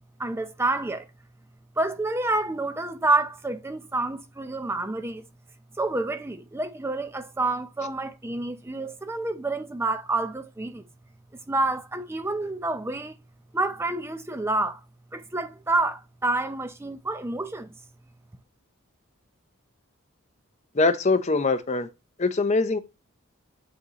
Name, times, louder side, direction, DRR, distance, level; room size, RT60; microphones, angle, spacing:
voice 1, 0.2-1.1 1.8-5.2 5.8-10.8 11.5-13.2 13.5-14.8 15.1-17.7, right 2 dB, 10° right, 0.5 m, -28 dB
voice 2, 20.8-21.9 22.2-22.8, left 3 dB, 30° left, 0.6 m, -22 dB
8.1 x 5.2 x 2.9 m
head